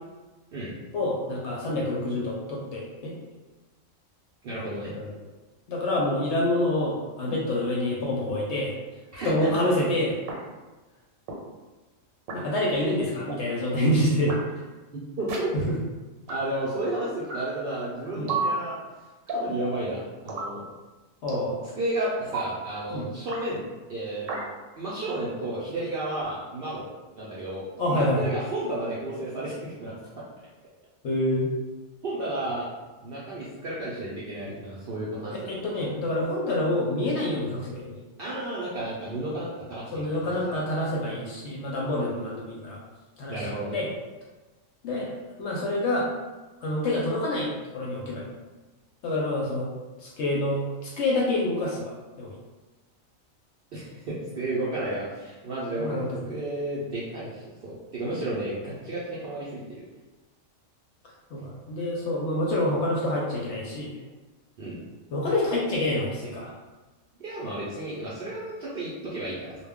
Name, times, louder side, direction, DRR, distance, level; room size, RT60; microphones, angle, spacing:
voice 1, 0.9-3.1 4.9-5.1 5.7-8.8 9.2-10.2 12.3-14.3 15.7-15.8 18.1-18.3 21.2-21.7 22.9-23.1 27.8-28.3 31.0-31.5 35.5-38.0 39.9-42.8 43.2-43.5 43.7-43.9 44.8-45.1 45.4-46.1 46.6-48.2 49.0-49.7 50.0-51.8 52.2-52.4 55.8-56.2 61.3-63.9 65.1-66.5, left 1 dB, 65° left, -3 dB, 0.8 m, -27 dB
voice 2, 4.4-4.9 9.1-9.3 15.2-15.5 16.3-18.8 19.3-20.6 21.7-23.6 23.9-24.5 24.8-26.9 27.2-29.9 32.0-32.7 33.0-35.5 38.2-40.4 43.2-43.8 53.7-59.8 64.6-64.8 67.2-69.6, right 1 dB, 60° right, -7 dB, 0.6 m, -32 dB
sound 1, 7.3-7.4 8.3-8.4 9.3-9.4 10.3-10.4 11.3-11.4 12.3-12.4 13.3-13.4 14.3-14.4 15.3-15.4 16.3-16.4 17.3-17.4 18.3-18.5 19.3-19.5 20.3-20.5 21.3-21.5 22.3-22.5 23.3-23.4 24.3-24.4, right 3 dB, 85° right, 1.0 m, -30 dB
2.2 x 2.1 x 3.5 m, 1.2 s
omnidirectional pair, 1.4 m